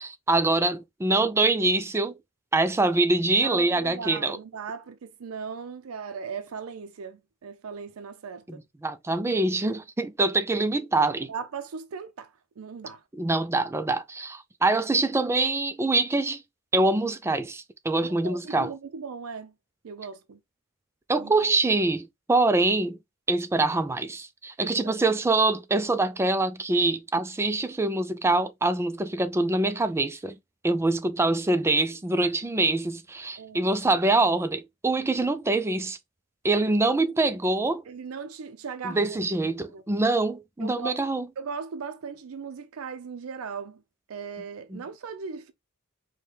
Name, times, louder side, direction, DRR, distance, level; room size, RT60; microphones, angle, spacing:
voice 1, 0.0-2.2 2.5-4.4 8.5-8.6 8.8-11.3 13.2-16.4 16.7-18.7 21.1-23.0 23.3-30.3 30.6-36.0 36.4-37.8 38.8-41.2 44.7-44.8, right 2 dB, 10° right, 0.3 m, -24 dB
voice 2, 3.4-8.6 11.1-13.0 18.0-19.5 19.8-20.4 21.2-21.3 24.6-25.0 33.4-33.7 37.9-39.2 39.7-39.8 40.6-41.0 41.4-43.8 44.1-45.5, right 5 dB, 85° right, 0.5 m, -38 dB
4.5 x 2.2 x 3.2 m
head